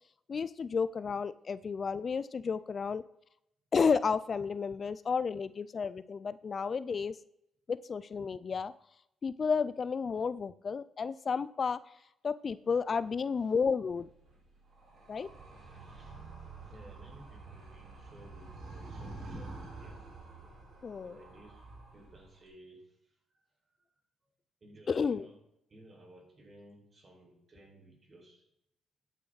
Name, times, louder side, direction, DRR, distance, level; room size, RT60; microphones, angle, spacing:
voice 1, 0.3-3.0 3.7-7.2 7.7-8.7 9.2-11.8 12.2-14.1 15.1-15.3 20.8-21.1 24.9-25.3, left 5 dB, 40° left, 16 dB, 0.4 m, -32 dB
voice 2, 13.2-13.5 15.1-20.0 21.0-23.4 24.6-25.4 25.7-28.5, right 1 dB, 35° right, 0 dB, 5.1 m, -57 dB
Animal, 13.9-22.5, right 3 dB, 60° right, 4.7 m, -48 dB
13.5 x 9.1 x 4.0 m, 0.79 s
cardioid pair, 90°, 0 cm